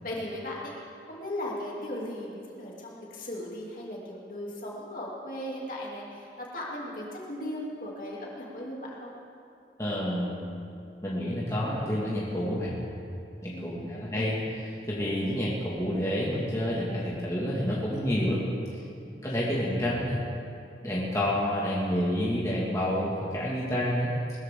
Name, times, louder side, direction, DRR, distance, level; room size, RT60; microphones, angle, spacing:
voice 1, 0.0-0.7 1.1-9.1 13.5-14.0, left 1 dB, 50° left, -4 dB, 2.9 m, -37 dB
voice 2, 9.8-10.4 11.0-12.7 13.4-18.4 19.2-20.2 20.8-24.1, equal, 15° left, -7 dB, 2.0 m, -29 dB
20.5 x 14.0 x 3.8 m, 2.5 s
head